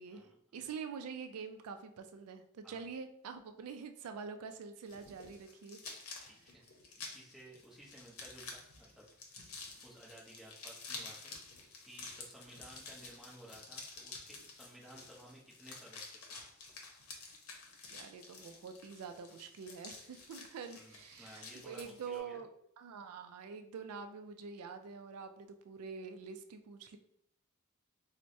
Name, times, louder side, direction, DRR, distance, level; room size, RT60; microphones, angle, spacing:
voice 1, 0.5-5.8 17.9-22.5 22.8-27.0, right 5 dB, 90° right, 7 dB, 0.4 m, -46 dB
sound 1, 4.9-22.2, left 3 dB, 75° left, 0.7 m, -50 dB
voice 2, 6.2-6.6 7.0-9.5 9.8-16.1 20.7-22.4, right 1 dB, ahead, -5 dB, 0.8 m, -56 dB
4.5 x 2.1 x 2.6 m, 0.73 s
head